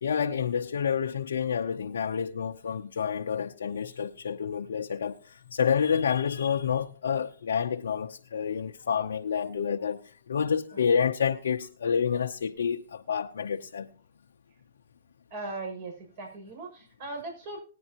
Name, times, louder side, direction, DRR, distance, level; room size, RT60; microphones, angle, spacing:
voice 1, 0.0-10.0 10.3-13.9, left 7 dB, 85° left, 0.7 m, -28 dB
voice 2, 15.3-17.6, right 2 dB, 50° right, 6.6 m, -39 dB
18.5 x 9.8 x 2.9 m
hypercardioid pair, 135°, 0 cm